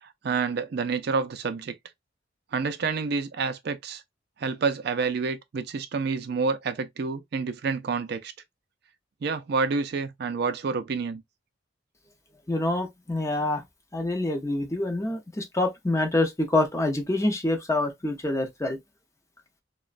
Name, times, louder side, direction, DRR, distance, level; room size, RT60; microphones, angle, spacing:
voice 1, 0.0-1.7 2.5-4.0 4.4-8.3 9.2-11.2, right 4 dB, 60° right, 0.4 m, -28 dB
voice 2, 12.5-13.6 13.9-18.8, left 2 dB, 15° left, 0.6 m, -26 dB
3.0 x 2.1 x 2.3 m
head